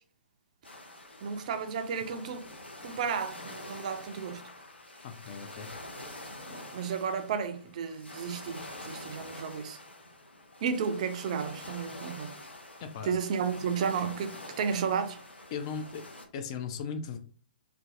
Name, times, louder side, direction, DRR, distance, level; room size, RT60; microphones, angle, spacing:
sound 1, 0.6-16.2, left 2 dB, 80° left, 0.6 m, -46 dB
voice 1, 1.2-2.5 2.8-4.4 6.5-9.8 10.6-12.3 13.0-15.2, right 6 dB, 40° right, 0.3 m, -33 dB
voice 2, 5.0-5.7 12.8-13.1 15.5-16.0 16.3-17.2, left 6 dB, 35° left, 0.4 m, -37 dB
2.5 x 2.2 x 2.4 m
figure-of-eight pair, 120°, 6 cm